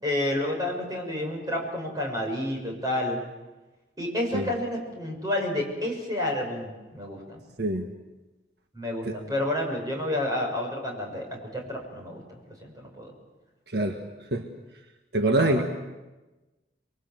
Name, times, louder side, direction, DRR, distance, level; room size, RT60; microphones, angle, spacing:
voice 1, 0.0-3.2 4.0-7.4 8.7-13.1 15.2-15.6, left 1 dB, 20° right, 1 dB, 6.7 m, -30 dB
voice 2, 7.6-7.9 9.1-9.2 13.7-14.0 14.3-14.5 15.1-15.6, right 2 dB, 65° right, 4 dB, 1.7 m, -24 dB
29.5 x 22.5 x 7.8 m, 1.1 s
head